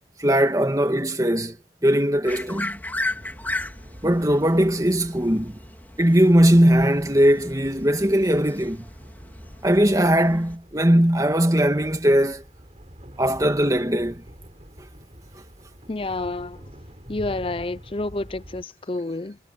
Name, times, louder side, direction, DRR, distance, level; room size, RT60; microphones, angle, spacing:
voice 1, 0.2-1.6 1.8-2.8 4.0-5.6 6.0-8.9 9.6-12.4 13.2-14.2, equal, 20° right, 2.2 m, -19 dB
sound 1, 2.3-10.6, left 2 dB, 10° left, 3.7 m, -36 dB
sound 2, 3.0-18.6, equal, 35° right, 4.3 m, -45 dB
voice 2, 15.9-16.6 17.1-19.4, left 2 dB, 30° left, 0.6 m, -29 dB
head